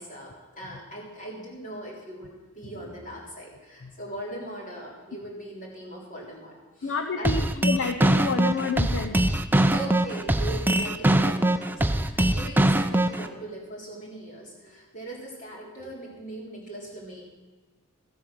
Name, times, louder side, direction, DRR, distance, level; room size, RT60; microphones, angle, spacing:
voice 1, 0.0-7.3 9.7-17.2, right 1 dB, 35° left, -2 dB, 3.5 m, -40 dB
voice 2, 6.8-9.2, left 4 dB, 60° left, 6 dB, 0.7 m, -29 dB
sound 1, 7.2-13.3, right 1 dB, 10° right, 0.5 m, -22 dB
14.0 x 8.4 x 6.2 m, 1.2 s
head